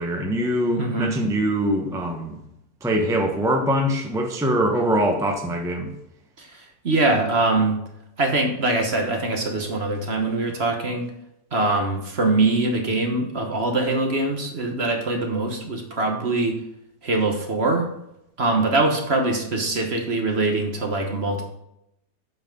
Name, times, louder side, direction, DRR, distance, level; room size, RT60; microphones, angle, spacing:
voice 1, 0.0-2.4 2.8-5.9, equal, 5° right, 2 dB, 0.7 m, -23 dB
voice 2, 0.8-1.1 6.4-7.8 8.2-11.1 11.5-16.6 17.0-17.9 18.4-21.4, right 2 dB, 40° right, 3 dB, 1.2 m, -23 dB
8.0 x 5.8 x 5.3 m, 0.81 s
omnidirectional pair, 1.8 m